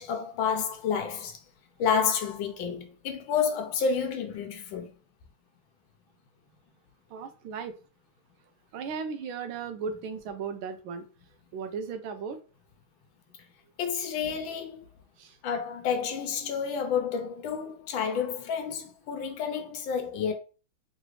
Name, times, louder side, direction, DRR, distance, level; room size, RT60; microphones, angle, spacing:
voice 1, 0.0-1.4 1.8-4.9 13.8-14.9 15.4-20.3, left 6 dB, 75° left, 1.3 m, -30 dB
voice 2, 7.1-7.7 8.7-11.0 11.5-12.4 15.2-15.4, right 5 dB, 75° right, 1.3 m, -36 dB
3.9 x 3.1 x 3.1 m
omnidirectional pair, 2.3 m